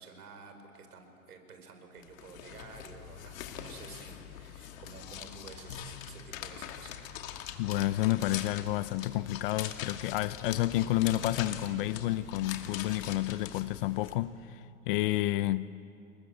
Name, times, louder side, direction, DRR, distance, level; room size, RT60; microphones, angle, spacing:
voice 1, 0.0-7.0, right 4 dB, 85° right, 6 dB, 4.8 m, -51 dB
sound 1, 2.0-14.1, left 10 dB, 60° left, 2.5 m, -43 dB
voice 2, 7.6-15.7, left 16 dB, 40° left, 16 dB, 0.6 m, -30 dB
Boom, 10.4-13.4, right 5 dB, 55° right, 6.6 m, -49 dB
28.5 x 21.0 x 8.1 m, 2.7 s
hypercardioid pair, 130°, 44 cm